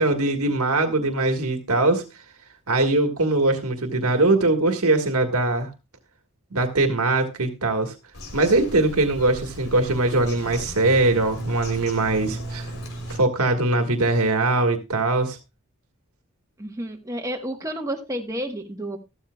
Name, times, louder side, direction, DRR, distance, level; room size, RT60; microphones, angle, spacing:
voice 1, 0.0-2.0 2.7-5.7 6.5-7.9 8.3-12.7 13.1-15.4, right 2 dB, 85° right, 5 dB, 1.6 m, -21 dB
Bird vocalization bird call bird song, 8.1-13.2, equal, 80° left, 3.4 m, -36 dB
voice 2, 16.6-19.0, right 1 dB, 15° right, 3 dB, 1.2 m, -30 dB
14.0 x 13.0 x 2.3 m, 0.25 s
head